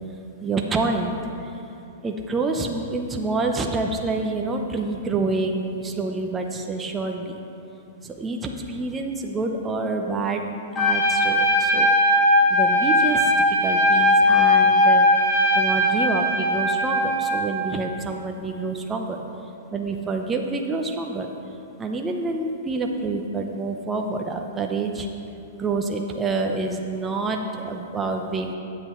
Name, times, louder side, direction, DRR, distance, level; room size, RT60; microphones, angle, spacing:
voice 1, 0.4-1.2 2.0-7.4 8.0-11.9 12.5-13.3 13.6-15.1 15.5-19.2 19.7-21.3 21.8-25.1 25.6-28.6, right 3 dB, 15° right, 3 dB, 0.7 m, -27 dB
Trumpet, 10.7-17.5, left 1 dB, 20° left, 2.1 m, -19 dB
14.0 x 7.8 x 3.1 m, 2.7 s
hypercardioid pair, 130°, 0 cm